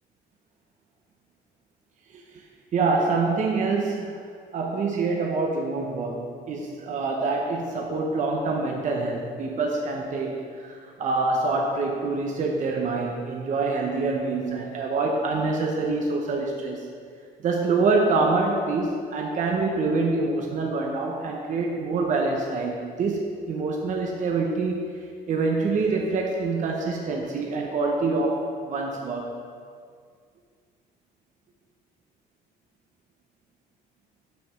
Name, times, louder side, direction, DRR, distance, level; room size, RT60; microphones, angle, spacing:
voice 1, 2.7-4.3 4.5-16.9 17.4-24.9 25.3-29.3, right 3 dB, 45° right, 1 dB, 0.8 m, -26 dB
6.2 x 5.2 x 6.2 m, 2.1 s
cardioid pair, 110°, 17 cm